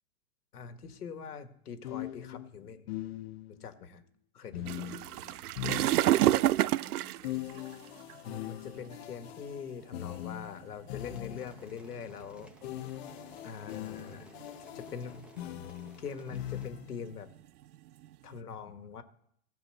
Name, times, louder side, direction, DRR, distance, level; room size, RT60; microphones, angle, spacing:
voice 1, 0.5-2.9 3.5-4.0 4.3-5.0 8.2-12.5 13.4-14.3 14.7-15.2 16.0-17.3 18.2-19.0, left 6 dB, 90° left, 9 dB, 1.7 m, -43 dB
sound 1, 0.8-1.0 1.8-3.6 4.5-6.4 7.2-11.7 12.6-17.1, left 14 dB, 45° left, 0.7 m, -41 dB
voice 2, 4.5-5.0 5.6-7.1, right 9 dB, 40° right, 5 dB, 2.3 m, -50 dB
sound 2, 4.7-8.2 8.9-9.1 9.8-9.9 10.2-10.4 11.0-11.5 12.4-13.5 13.9-14.5 14.9-15.2 15.6-18.3, right 14 dB, 80° right, 0.5 m, -29 dB
sound 3, 11.0-16.7, left 1 dB, 5° right, 1.0 m, -58 dB
15.0 x 5.8 x 7.7 m, 0.69 s
hypercardioid pair, 135°, 44 cm